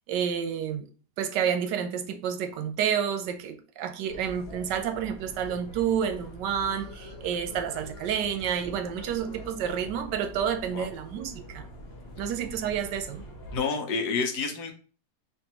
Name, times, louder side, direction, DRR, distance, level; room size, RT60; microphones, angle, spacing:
voice 1, 0.1-0.9 1.2-11.7 12.2-13.2, right 8 dB, 85° right, 1.3 m, -29 dB
sound 1, 4.1-13.6, equal, 45° left, 0.9 m, -44 dB
voice 2, 13.5-14.7, left 4 dB, 70° left, 1.3 m, -29 dB
4.4 x 3.1 x 2.9 m
omnidirectional pair, 1.8 m